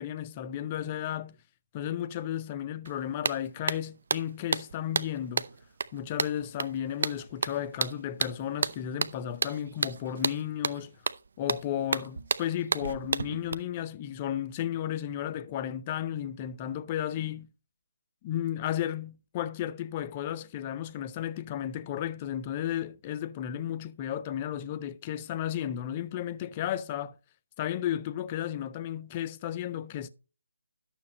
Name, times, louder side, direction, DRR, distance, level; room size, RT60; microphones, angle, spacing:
voice 1, 0.0-1.4 1.7-5.5 5.9-10.9 11.4-17.5 18.2-27.1 27.6-30.1, left 10 dB, 25° left, 0.6 m, -33 dB
sound 1, 2.9-3.0 3.2-13.5, right 5 dB, 50° right, 0.6 m, -32 dB
12.0 x 7.1 x 2.9 m
figure-of-eight pair, 145°, 0 cm